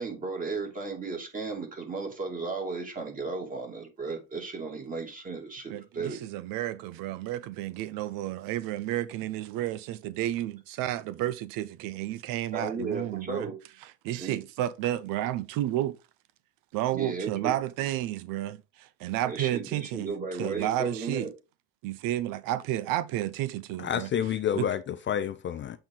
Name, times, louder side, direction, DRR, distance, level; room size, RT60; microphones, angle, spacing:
voice 1, 0.0-6.2 12.5-13.6 14.2-14.4 16.9-17.5 19.2-21.3, right 4 dB, 25° right, 2.6 m, -35 dB
voice 2, 5.7-13.5 14.0-16.0 16.7-20.1 20.4-21.3 21.8-24.1 24.6-24.7, right 13 dB, 80° right, 0.6 m, -31 dB
voice 3, 23.8-25.8, left 9 dB, 35° left, 0.5 m, -29 dB
7.7 x 4.5 x 3.7 m
cardioid pair, 140°, 34 cm